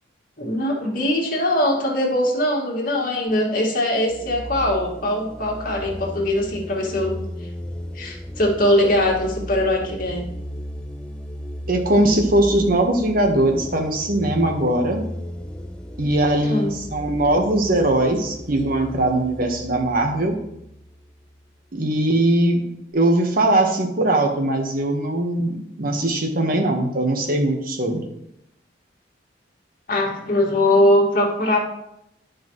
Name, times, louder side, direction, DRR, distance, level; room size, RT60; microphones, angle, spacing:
voice 1, 0.4-7.2 7.9-10.2 16.4-16.8 29.9-31.6, left 1 dB, 50° left, -1 dB, 2.0 m, -21 dB
sound 1, 4.1-21.5, equal, 5° left, 0.5 m, -35 dB
voice 2, 11.7-15.1 16.0-20.4 21.7-22.6 22.9-28.0, right 1 dB, 50° right, 3 dB, 1.3 m, -20 dB
12.0 x 5.1 x 3.1 m, 0.79 s
head